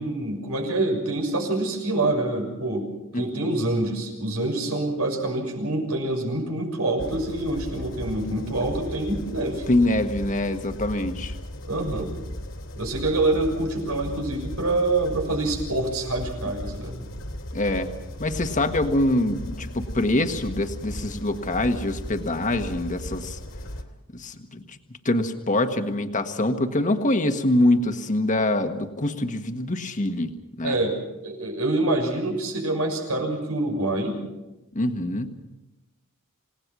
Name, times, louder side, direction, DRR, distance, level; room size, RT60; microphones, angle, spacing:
voice 1, 0.0-9.7 11.7-12.1 12.8-17.1 30.6-34.2, right 2 dB, 90° right, 2 dB, 6.4 m, -26 dB
voice 2, 3.1-3.5 9.7-11.3 17.5-17.9 18.2-23.4 24.1-24.8 25.0-30.3 30.6-30.8 34.7-35.4, left 1 dB, 35° left, 6 dB, 1.5 m, -24 dB
sound 1, 7.0-23.8, left 1 dB, 65° left, 2.5 m, -36 dB
28.0 x 18.0 x 6.2 m, 1.0 s
head